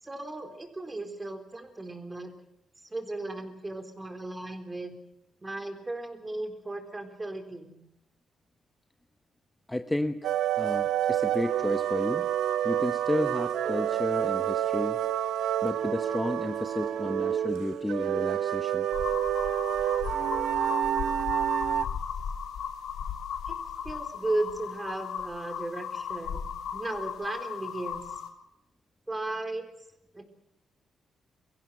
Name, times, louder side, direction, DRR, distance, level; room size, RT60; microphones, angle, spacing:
voice 1, 0.0-2.3 2.8-5.0 5.4-7.7 23.5-23.6 23.8-26.4 26.7-28.2 29.1-29.7 30.1-30.2, right 2 dB, 20° right, 7 dB, 3.8 m, -35 dB
voice 2, 9.7-10.3 10.6-12.3 12.6-15.0 15.6-18.9, left 1 dB, 10° left, 9 dB, 0.8 m, -32 dB
sound 1, 10.2-21.8, right 10 dB, 85° right, 0.9 m, -28 dB
sound 2, 18.9-28.3, left 7 dB, 85° left, 3.3 m, -36 dB
23.5 x 16.0 x 9.1 m, 0.83 s
cardioid pair, 110°, 0 cm